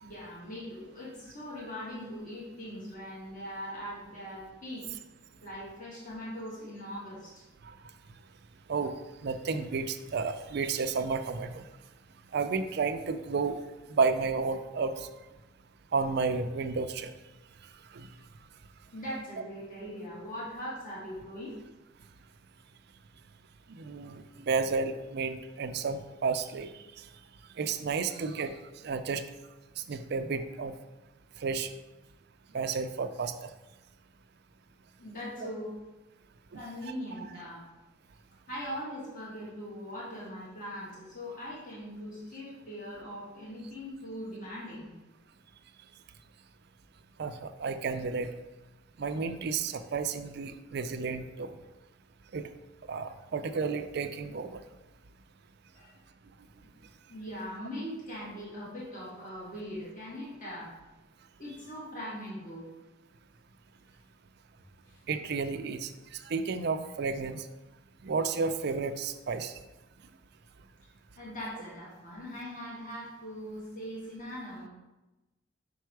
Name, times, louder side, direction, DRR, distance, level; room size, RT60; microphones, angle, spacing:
voice 1, 0.0-4.8 5.4-7.4 18.9-21.5 35.0-35.7 36.5-37.6 38.5-44.9 55.7-56.0 57.1-60.7 61.4-62.7 64.8-65.0 71.2-74.7, equal, 45° left, -6 dB, 1.6 m, -41 dB
voice 2, 9.2-11.6 12.3-13.6 13.9-15.1 15.9-17.1 17.9-18.1 23.7-26.7 27.0-27.1 27.6-28.5 28.8-29.2 29.9-30.7 31.4-31.7 32.5-33.3 35.4-35.5 36.5-36.6 37.2-37.3 47.2-48.3 49.0-51.6 52.3-52.5 52.9-54.6 65.1-67.5 68.0-69.5, right 4 dB, 55° right, 9 dB, 0.4 m, -32 dB
5.5 x 4.5 x 4.6 m, 1.1 s
head